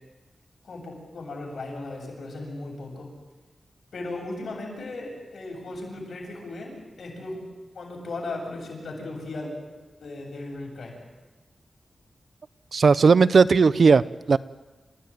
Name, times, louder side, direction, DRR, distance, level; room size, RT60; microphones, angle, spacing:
voice 1, 0.7-3.1 3.9-7.4 7.7-9.5 10.0-11.0, left 2 dB, 80° left, -1 dB, 7.8 m, -36 dB
voice 2, 12.7-14.0 14.3-14.4, right 5 dB, 70° right, 16 dB, 0.7 m, -16 dB
27.5 x 15.0 x 9.2 m, 1.2 s
wide cardioid pair, 85°, 0 cm